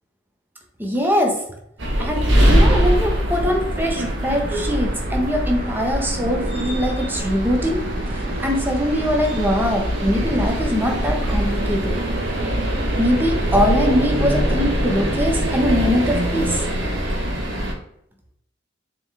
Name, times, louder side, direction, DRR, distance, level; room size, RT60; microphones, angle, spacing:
voice 1, 0.8-1.4 2.0-7.8 8.1-12.0 13.0-16.6, equal, 10° right, 1 dB, 1.2 m, -22 dB
sound 1, 1.8-17.7, equal, 85° right, 1.7 m, -22 dB
sound 2, 2.5-15.3, right 1 dB, 50° right, 1.2 m, -32 dB
6.6 x 4.8 x 3.6 m, 0.74 s
head